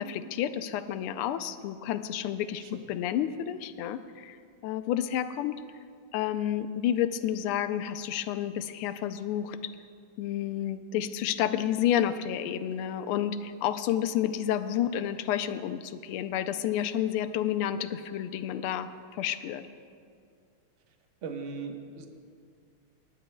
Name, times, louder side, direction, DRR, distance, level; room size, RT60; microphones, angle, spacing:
voice 1, 0.0-4.4 4.6-5.6 6.1-9.7 10.2-19.7, left 10 dB, 85° left, 11 dB, 1.5 m, -30 dB
voice 2, 21.2-22.1, right 5 dB, 50° right, 4 dB, 0.9 m, -38 dB
27.5 x 11.0 x 2.2 m, 2.2 s
omnidirectional pair, 2.4 m